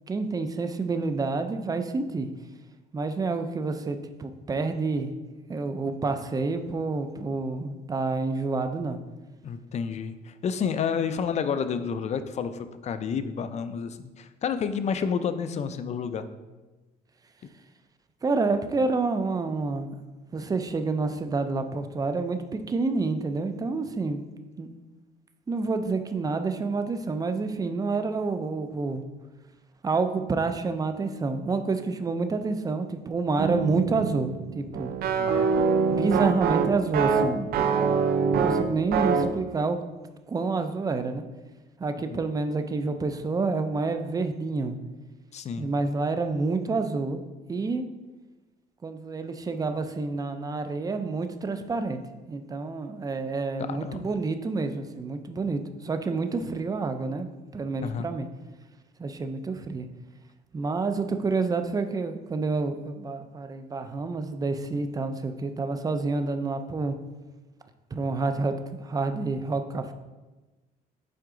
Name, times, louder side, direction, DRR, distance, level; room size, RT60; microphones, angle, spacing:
voice 1, 0.1-2.3 2.9-5.1 5.5-9.0 18.2-19.9 20.3-24.2 24.6-24.7 25.5-29.0 29.8-34.9 35.9-37.5 38.4-39.8 40.3-41.2 41.8-44.7 45.6-47.2 47.5-47.8 48.8-52.0 52.3-58.3 59.0-59.9 60.5-67.0 67.9-68.5 68.8-69.9, right 3 dB, 20° right, 8 dB, 0.5 m, -28 dB
voice 2, 9.4-16.3 35.2-35.5 42.1-42.2 45.3-45.7 53.6-54.1 57.8-58.1, left 6 dB, 40° left, 11 dB, 0.5 m, -30 dB
sound 1, 33.4-39.4, right 5 dB, 65° right, 0.6 m, -25 dB
7.8 x 4.6 x 3.8 m, 1.2 s
cardioid pair, 110°, 17 cm